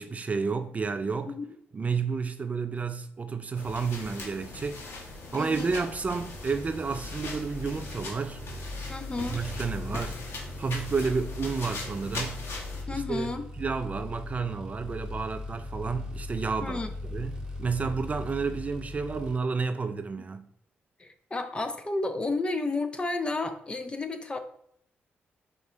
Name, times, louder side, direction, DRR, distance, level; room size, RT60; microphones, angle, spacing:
voice 1, 0.0-1.4 1.7-4.9 5.3-8.4 9.3-10.2 10.6-12.4 12.9-13.3 13.6-20.5, right 5 dB, 35° right, 0.4 m, -31 dB
sound 1, 3.5-12.8, left 3 dB, 70° left, 1.6 m, -40 dB
voice 2, 5.4-5.7 8.9-9.4 12.9-13.5 16.6-16.9 21.0-24.4, left 2 dB, 25° left, 0.7 m, -32 dB
sound 2, 5.6-19.4, left 2 dB, 15° right, 1.9 m, -39 dB
5.3 x 4.5 x 4.0 m
cardioid pair, 105°, 4 cm